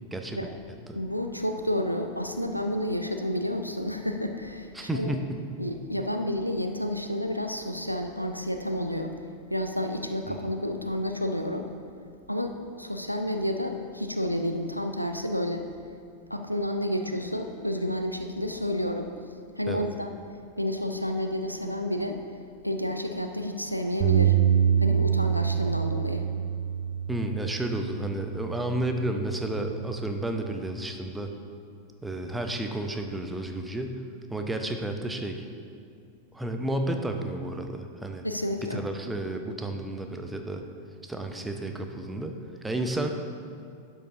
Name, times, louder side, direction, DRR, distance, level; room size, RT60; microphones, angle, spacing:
voice 1, 0.9-5.1 5.6-9.1 9.5-11.7 12.0-15.7 16.3-19.1 19.6-20.2 20.6-22.2 22.6-24.4 24.8-26.3 38.2-38.8, left 1 dB, 90° left, 5 dB, 0.5 m, -30 dB
voice 2, 4.7-5.4 10.3-10.5 19.7-19.9 27.1-31.3 32.0-34.0 34.3-35.5 36.3-38.2 38.7-40.6 41.0-42.3 42.6-43.1, right 1 dB, 5° right, 4 dB, 0.6 m, -31 dB
Bass guitar, 24.0-30.3, right 8 dB, 45° right, 0.7 m, -26 dB
11.5 x 5.0 x 3.7 m, 2.3 s
figure-of-eight pair, 90°, 0 cm